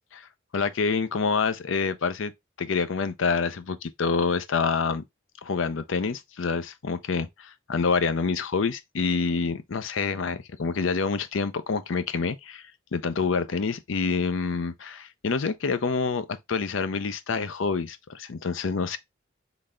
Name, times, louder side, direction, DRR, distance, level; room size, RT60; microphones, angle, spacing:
voice 1, 0.5-2.3 2.6-5.0 5.4-19.0, left 4 dB, 80° left, 0.6 m, -27 dB
4.0 x 3.3 x 3.6 m
head